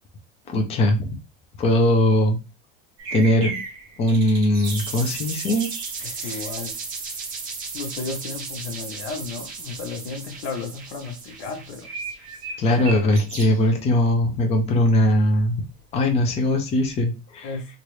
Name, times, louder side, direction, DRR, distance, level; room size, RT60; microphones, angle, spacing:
voice 1, 0.5-1.1 1.6-2.4 3.1-3.6 4.0-5.7 6.0-6.4 12.6-15.6 15.9-17.5, left 1 dB, 20° left, 0.5 m, -20 dB
sound 1, 3.0-7.1 7.6-7.7 8.1-8.5 9.1-9.6 10.0-10.1 10.3-10.4 11.6-13.7 15.5-16.9, right 4 dB, 40° right, 1.3 m, -37 dB
sound 2, 4.6-12.4, right 4 dB, 25° right, 0.8 m, -35 dB
voice 2, 6.0-6.7 7.7-11.9 17.4-17.7, left 4 dB, 90° left, 1.0 m, -33 dB
2.9 x 2.5 x 3.1 m
cardioid pair, 160°, 31 cm